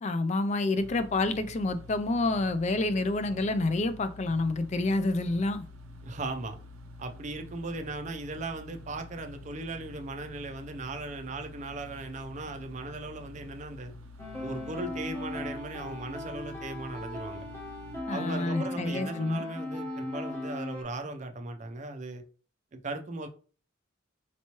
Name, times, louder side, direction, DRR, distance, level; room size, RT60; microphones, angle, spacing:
voice 1, 0.0-5.7 18.1-19.4, left 2 dB, 35° left, 0.3 m, -28 dB
sound 1, 0.8-18.0, left 2 dB, 90° right, 0.6 m, -48 dB
voice 2, 6.0-6.6 7.0-13.9 14.4-17.5 18.1-22.2 22.7-23.3, right 2 dB, 35° right, 0.5 m, -38 dB
sound 2, 14.2-20.8, left 1 dB, 10° left, 0.9 m, -38 dB
4.4 x 2.9 x 2.9 m
head